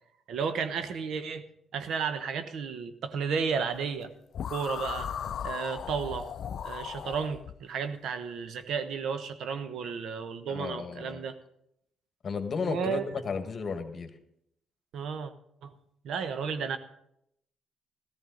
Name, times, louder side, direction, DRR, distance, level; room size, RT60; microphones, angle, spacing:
voice 1, 0.3-1.5 1.7-4.1 4.5-5.1 5.4-6.3 6.6-11.4 12.6-13.0 14.9-15.3 15.6-15.7 16.0-16.8, right 6 dB, 75° right, 10 dB, 0.9 m, -33 dB
sound 1, 4.3-7.6, left 8 dB, 65° left, 0.4 m, -36 dB
voice 2, 10.5-11.3 12.2-14.1, left 5 dB, 45° left, 8 dB, 1.4 m, -34 dB
14.0 x 13.5 x 3.9 m, 0.76 s
cardioid pair, 90°, 0 cm